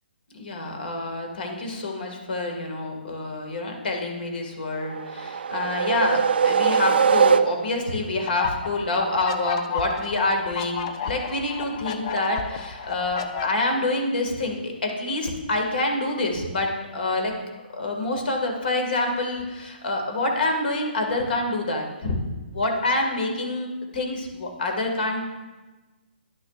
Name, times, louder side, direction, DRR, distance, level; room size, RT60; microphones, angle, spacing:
voice 1, 0.3-17.3 17.7-22.2 22.5-25.3, left 2 dB, 60° left, 3 dB, 1.7 m, -27 dB
sound 1, 4.8-7.9, right 6 dB, 70° right, 0.4 m, -21 dB
sound 2, 8.3-13.5, left 6 dB, 35° left, 0.5 m, -32 dB
11.5 x 6.3 x 2.4 m, 1.2 s
hypercardioid pair, 155°, 6 cm